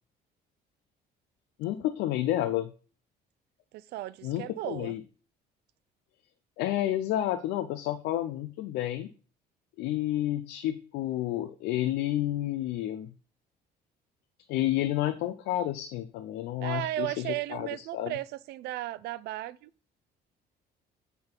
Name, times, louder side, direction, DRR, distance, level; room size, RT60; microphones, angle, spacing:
voice 1, 1.6-2.7 4.2-5.0 6.6-9.1 9.8-13.1 14.5-18.2, left 13 dB, 85° left, 0.6 m, -30 dB
voice 2, 3.7-4.9 16.6-19.7, right 15 dB, 75° right, 0.4 m, -35 dB
8.0 x 3.7 x 5.2 m
cardioid pair, 110°, 17 cm